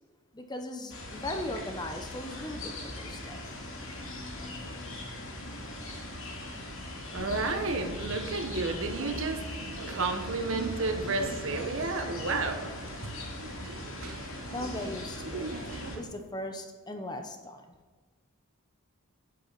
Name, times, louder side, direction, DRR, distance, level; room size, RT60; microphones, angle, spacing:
voice 1, 0.3-3.4 14.5-15.5 15.9-17.6, left 1 dB, 20° left, 5 dB, 0.8 m, -38 dB
sound 1, 0.9-16.0, left 1 dB, 65° left, 2.3 m, -40 dB
voice 2, 7.1-9.5 9.9-12.7 13.0-13.1, right 3 dB, 65° right, 6 dB, 1.1 m, -31 dB
sound 2, 7.2-16.0, right 3 dB, 80° right, 0.8 m, -42 dB
9.6 x 8.0 x 4.1 m, 1.4 s
head